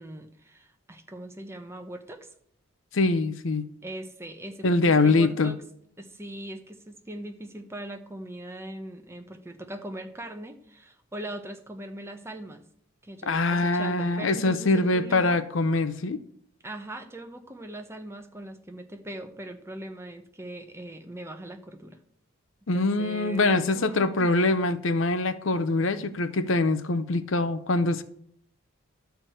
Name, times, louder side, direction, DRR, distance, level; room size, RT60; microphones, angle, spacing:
voice 1, 0.0-2.3 3.8-5.6 6.0-12.6 13.0-15.4 16.6-22.0 22.7-24.3, right 1 dB, 10° right, 6 dB, 0.9 m, -40 dB
voice 2, 2.9-3.7 4.6-5.5 13.3-16.2 22.7-28.0, left 2 dB, 60° left, 12 dB, 0.7 m, -24 dB
12.0 x 4.7 x 7.8 m, 0.65 s
head